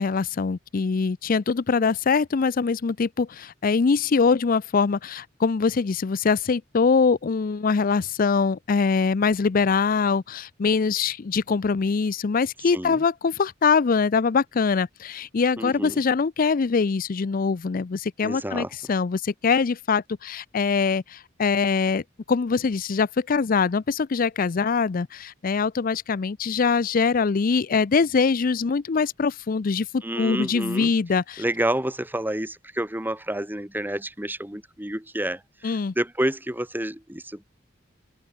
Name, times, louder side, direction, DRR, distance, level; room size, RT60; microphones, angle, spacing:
voice 1, 0.0-31.4 35.6-35.9, left 5 dB, 50° left, 0.5 m, -23 dB
voice 2, 12.7-13.0 15.6-16.0 18.2-18.7 30.0-30.9 31.4-37.5, right 1 dB, 10° right, 2.5 m, -29 dB
open air
head